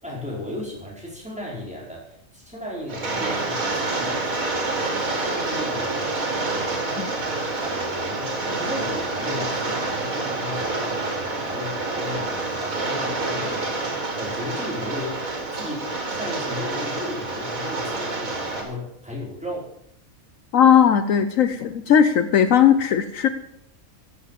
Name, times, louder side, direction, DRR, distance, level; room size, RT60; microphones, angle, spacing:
voice 1, 0.0-4.7 5.1-6.1 6.5-6.9 7.6-15.2 15.5-19.7, left 1 dB, 5° right, -5 dB, 5.2 m, -35 dB
Rain, 2.9-18.6, right 2 dB, 85° right, 3.1 m, -27 dB
voice 2, 20.5-23.3, left 8 dB, 75° left, 10 dB, 1.2 m, -17 dB
14.5 x 8.4 x 7.5 m, 0.74 s
omnidirectional pair, 1.4 m